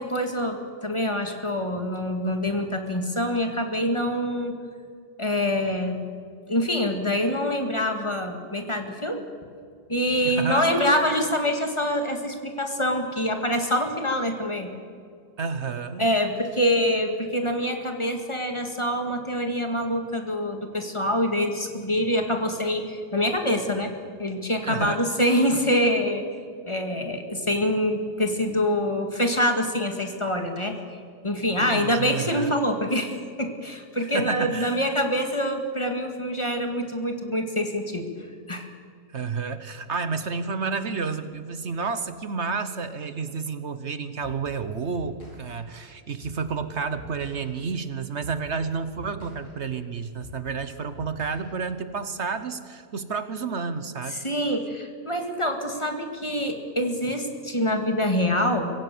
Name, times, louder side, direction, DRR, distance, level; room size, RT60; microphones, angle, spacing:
voice 1, 0.0-4.6 5.2-6.0 6.5-9.2 9.9-14.7 16.0-23.9 24.2-26.2 26.7-31.0 31.2-38.1 38.5-38.7 54.1-58.7, equal, 20° left, 5 dB, 2.0 m, -25 dB
voice 2, 10.2-10.7 15.4-16.1 24.7-25.1 31.6-32.5 34.1-34.8 39.1-54.2, right 5 dB, 50° right, 12 dB, 1.1 m, -30 dB
sound 1, 44.2-52.0, left 2 dB, 75° left, 5.7 m, -46 dB
25.0 x 16.0 x 6.9 m, 2.3 s
omnidirectional pair, 1.7 m